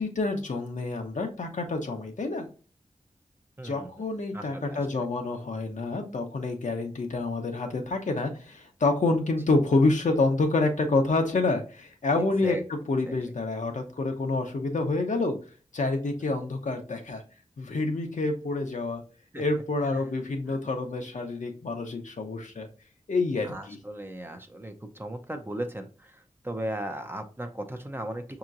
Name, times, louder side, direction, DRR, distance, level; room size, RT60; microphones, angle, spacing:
voice 1, 0.0-2.5 3.6-15.3 15.7-17.2 17.6-19.0 19.4-22.7 23.1-23.8, left 3 dB, 70° left, 3 dB, 0.8 m, -28 dB
voice 2, 3.6-4.0 4.3-5.0 12.2-12.6 13.1-13.2 19.3-19.4 19.8-20.0 20.5-20.6 23.4-28.4, right 1 dB, 15° right, 6 dB, 0.6 m, -37 dB
5.5 x 2.9 x 2.5 m, 0.38 s
wide cardioid pair, 90°, 13 cm